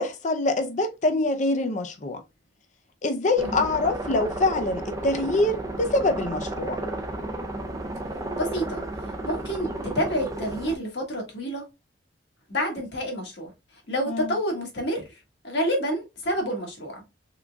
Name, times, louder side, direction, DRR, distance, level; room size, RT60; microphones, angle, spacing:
voice 1, 0.0-2.2 3.0-6.8 14.1-14.4, left 2 dB, 40° left, 0.5 m, -25 dB
sound 1, 3.4-10.7, right 2 dB, 20° right, 0.4 m, -33 dB
voice 2, 8.4-11.6 12.5-13.5 13.9-15.2 15.4-17.0, equal, 60° left, 1.3 m, -29 dB
3.7 x 3.6 x 2.2 m
head